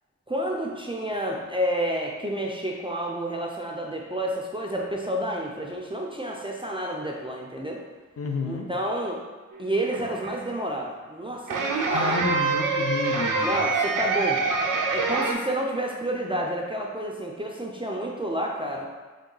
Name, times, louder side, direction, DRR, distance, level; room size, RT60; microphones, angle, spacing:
voice 1, 0.3-7.8 8.5-9.2 9.6-12.2 13.4-14.4 14.9-18.9, right 1 dB, 15° right, -1 dB, 0.3 m, -30 dB
voice 2, 8.2-8.7 11.9-13.6, left 4 dB, 50° left, 2 dB, 0.5 m, -30 dB
sound 1, 9.5-10.4 11.5-15.3, right 4 dB, 85° right, 0.5 m, -26 dB
3.7 x 2.2 x 3.8 m, 1.3 s
wide cardioid pair, 85°, 32 cm